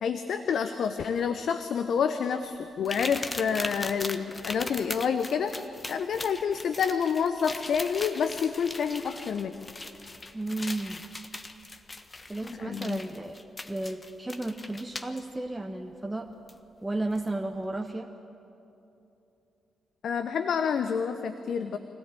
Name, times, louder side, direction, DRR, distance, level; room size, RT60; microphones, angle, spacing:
voice 1, 0.0-5.5 5.9-9.5 12.6-13.0 20.0-21.8, left 7 dB, 65° left, 9 dB, 0.8 m, -28 dB
sound 1, 2.8-15.2 16.5-16.6 17.1-17.3, left 2 dB, 30° left, 1.4 m, -40 dB
voice 2, 10.3-11.0 12.3-13.4 13.7-16.3 16.8-18.1, right 2 dB, 15° right, 3 dB, 1.4 m, -33 dB
24.5 x 17.0 x 9.1 m, 2.8 s
hypercardioid pair, 40°, 0 cm